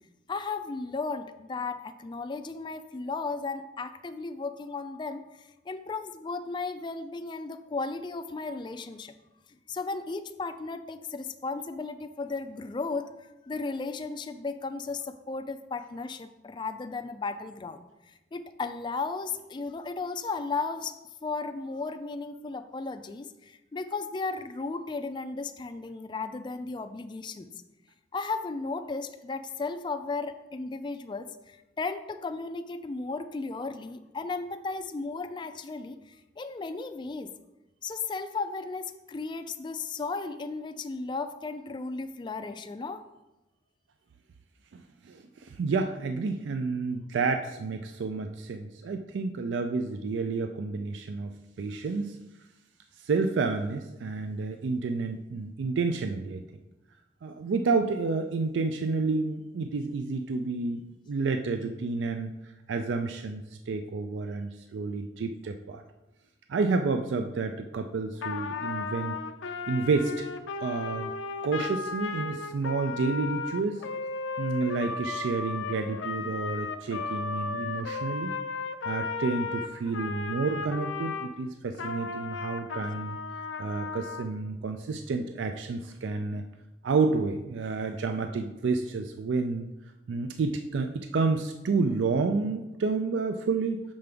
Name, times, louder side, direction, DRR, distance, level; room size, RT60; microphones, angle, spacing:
voice 1, 0.3-9.1 9.7-27.5 28.1-37.3 37.8-43.0, left 4 dB, 25° left, 10 dB, 0.3 m, -35 dB
voice 2, 44.7-52.2 53.0-56.4 57.2-65.8 66.5-69.2 69.4-70.2 70.6-71.1 71.4-73.8 74.4-78.4 78.8-83.2 83.6-86.5 86.8-89.7 90.1-93.8, right 4 dB, 70° right, 6 dB, 0.4 m, -30 dB
Trumpet, 68.2-81.3 81.7-84.3, left 4 dB, 85° left, 0.5 m, -35 dB
6.7 x 5.2 x 3.4 m, 1.0 s
head